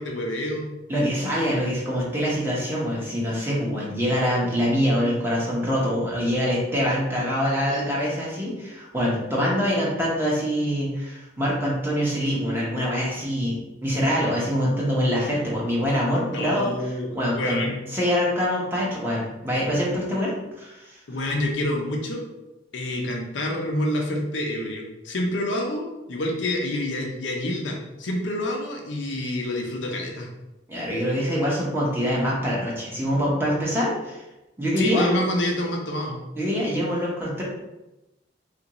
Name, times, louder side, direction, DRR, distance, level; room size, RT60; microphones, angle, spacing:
voice 1, 0.0-0.7 6.9-7.0 7.6-8.0 16.3-17.8 21.1-22.3 22.7-30.3 34.8-36.2, left 1 dB, 70° left, 1 dB, 0.6 m, -28 dB
voice 2, 0.9-13.6 13.8-17.6 17.9-20.3 20.6-21.0 30.7-34.2 34.6-35.1 36.4-37.4, equal, 10° right, -5 dB, 0.8 m, -24 dB
3.4 x 2.5 x 2.9 m, 0.98 s
head